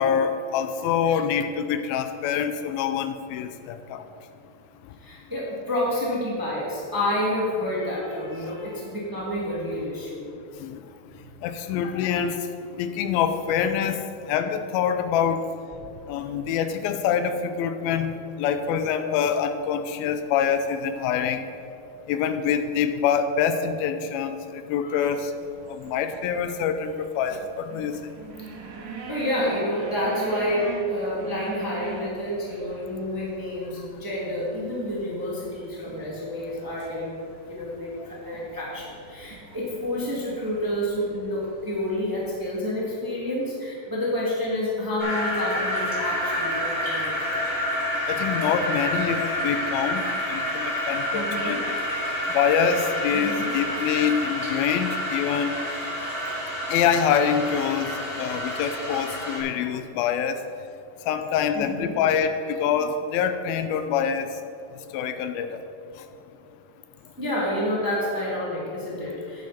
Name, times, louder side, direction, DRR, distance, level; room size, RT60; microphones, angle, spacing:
voice 1, 0.0-4.0 10.6-10.8 11.4-12.4 12.8-14.0 14.3-15.4 16.1-21.4 22.1-24.4 24.7-25.3 25.8-28.0 48.1-50.0 50.3-51.6 52.3-55.6 56.7-57.9 58.2-60.4 61.1-64.3 64.9-65.5, left 7 dB, 85° left, 9 dB, 2.5 m, -25 dB
voice 2, 5.0-10.3 15.7-15.8 24.8-25.1 29.1-37.1 37.5-47.3 51.1-51.6 53.1-53.5 61.5-62.0 67.2-69.5, left 1 dB, 10° right, -6 dB, 1.4 m, -29 dB
sound 1, 25.4-42.5, right 4 dB, 80° right, 2.9 m, -43 dB
sound 2, 45.0-59.4, equal, 20° left, 2.2 m, -28 dB
10.5 x 9.6 x 4.3 m, 2.5 s
omnidirectional pair, 4.2 m